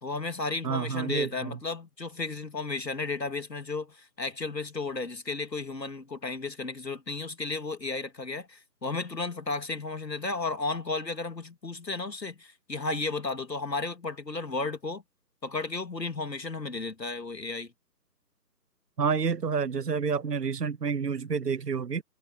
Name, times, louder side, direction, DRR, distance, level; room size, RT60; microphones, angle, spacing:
voice 1, 0.0-15.0 15.4-17.7, left 3 dB, 80° left, 2.5 m, -33 dB
voice 2, 0.6-1.6 19.0-22.0, right 6 dB, 70° right, 0.9 m, -29 dB
figure-of-eight pair, 155°, 50 cm